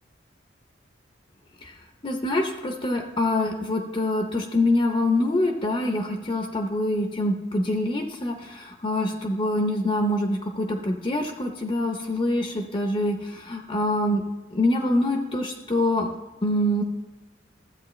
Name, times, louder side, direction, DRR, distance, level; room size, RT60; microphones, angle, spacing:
voice 1, 2.0-14.2 14.5-16.1 16.4-16.8, left 1 dB, 30° left, 3 dB, 0.6 m, -25 dB
13.5 x 8.0 x 3.1 m, 1.2 s
head